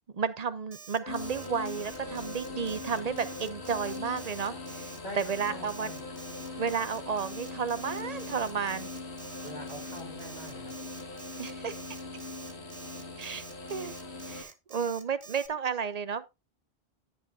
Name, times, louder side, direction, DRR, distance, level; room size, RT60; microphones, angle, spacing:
voice 1, 0.1-4.9 5.2-5.9 6.6-8.9 11.4-11.8 13.2-13.4 13.7-13.9 14.3-16.3, right 6 dB, 45° right, 0.7 m, -32 dB
Alarm, 0.7-15.5, right 6 dB, 75° right, 1.4 m, -48 dB
Wind instrument woodwind instrument, 1.0-7.3, left 5 dB, 15° right, 1.2 m, -50 dB
sound 1, 1.1-14.4, left 3 dB, 75° left, 2.2 m, -41 dB
voice 2, 5.0-6.1 9.4-10.7, left 1 dB, 40° left, 3.7 m, -44 dB
10.5 x 8.7 x 2.7 m
omnidirectional pair, 1.1 m